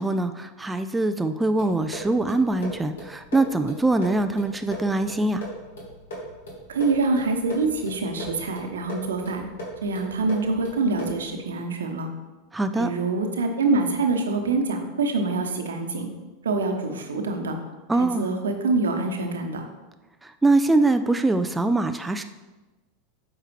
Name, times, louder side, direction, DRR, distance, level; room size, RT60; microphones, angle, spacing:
voice 1, 0.0-5.4 12.5-12.9 17.9-18.3 20.2-22.2, right 2 dB, 10° right, 8 dB, 0.4 m, -23 dB
sound 1, 1.6-11.3, equal, 65° left, 2.2 m, -39 dB
voice 2, 6.7-9.4 9.8-12.1 12.8-16.1 16.4-17.5 18.0-19.7, right 3 dB, 70° right, 5 dB, 1.0 m, -25 dB
8.9 x 5.8 x 3.3 m, 1.2 s
figure-of-eight pair, 85°, 0 cm